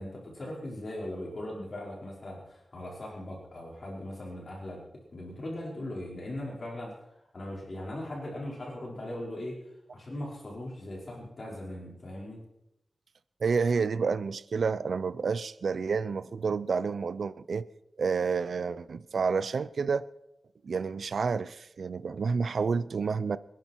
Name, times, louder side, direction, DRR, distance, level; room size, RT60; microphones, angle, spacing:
voice 1, 0.0-4.8 5.1-6.9 7.3-9.6 9.9-12.4, left 1 dB, 45° left, 5.2 m, -39 dB
voice 2, 13.4-17.7 18.0-20.1 20.6-23.4, right 5 dB, 70° right, 0.6 m, -29 dB
26.0 x 11.0 x 4.6 m
wide cardioid pair, 145°, 0 cm